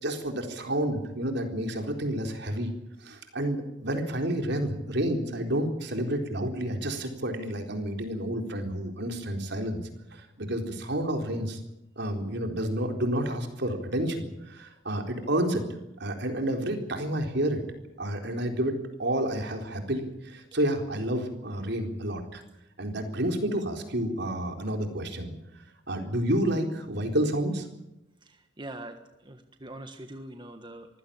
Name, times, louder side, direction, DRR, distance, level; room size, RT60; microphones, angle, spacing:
voice 1, 0.0-2.7 3.0-9.8 10.1-11.6 12.0-15.7 16.0-17.6 18.0-22.4 22.8-25.3 25.9-27.7, right 1 dB, 60° right, 4 dB, 4.0 m, -30 dB
voice 2, 28.3-30.9, right 1 dB, 25° right, 6 dB, 1.4 m, -43 dB
24.5 x 16.0 x 8.7 m, 0.90 s
head